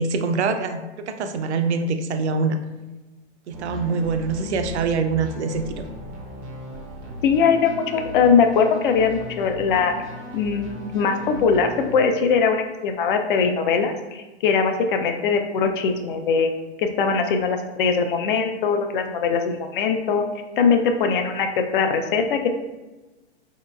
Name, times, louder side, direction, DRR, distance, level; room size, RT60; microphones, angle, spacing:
voice 1, 0.0-2.6 3.5-5.8, right 4 dB, 75° right, 7 dB, 0.5 m, -24 dB
sound 1, 3.5-12.0, left 1 dB, 20° right, 0.5 m, -37 dB
voice 2, 7.2-10.0 10.3-16.5 16.8-20.2 20.6-21.5 21.7-22.5, left 5 dB, 50° left, 6 dB, 0.5 m, -21 dB
3.8 x 2.8 x 2.2 m, 1.1 s
hypercardioid pair, 135°, 34 cm